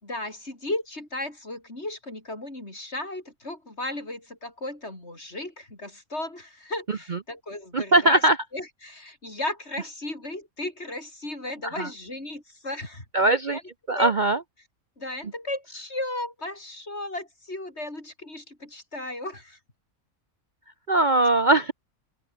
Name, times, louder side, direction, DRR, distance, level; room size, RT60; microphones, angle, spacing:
voice 1, 0.0-13.0 13.5-13.6 13.9-14.1 15.0-19.6, left 1 dB, 50° left, 6.4 m, -35 dB
voice 2, 7.7-8.4 11.8-11.9 13.1-13.6 13.9-14.4 20.9-21.7, right 2 dB, 40° right, 0.9 m, -20 dB
open air
omnidirectional pair, 1.4 m